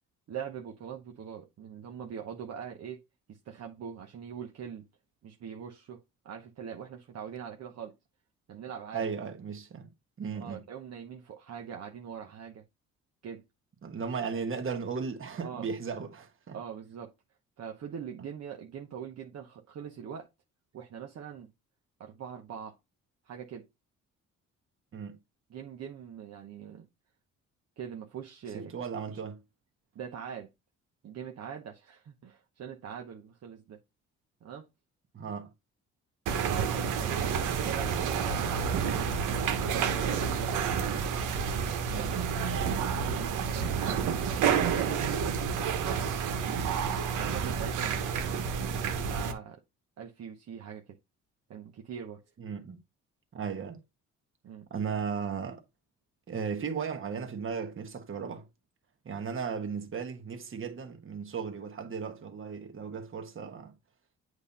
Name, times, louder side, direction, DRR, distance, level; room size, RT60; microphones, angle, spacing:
voice 1, 0.3-3.0 3.3-4.9 5.2-6.0 6.2-7.9 8.5-9.0 10.3-12.6 13.2-13.4 15.4-15.7 16.5-17.1 17.6-20.3 20.7-21.5 22.0-22.8 23.2-23.7 25.5-26.9 27.8-28.7 29.1-29.2 29.9-30.5 31.0-33.8 34.4-34.7 36.3-39.0 39.9-40.5 41.9-44.1 44.8-45.2 47.2-48.4 48.9-49.6 50.0-51.0 51.5-52.2 54.4-54.7, right 8 dB, 60° right, 1.0 m, -42 dB
voice 2, 8.9-9.9 10.2-10.6 13.8-16.6 24.9-25.2 28.5-29.4 35.1-35.5 41.9-42.1 52.4-52.8 53.3-53.8 54.7-55.6 56.3-58.5 59.0-63.7, right 6 dB, 45° right, 1.4 m, -36 dB
sound 1, 36.3-49.3, right 7 dB, 90° right, 1.1 m, -29 dB
8.1 x 2.8 x 5.3 m
cardioid pair, 90°, 30 cm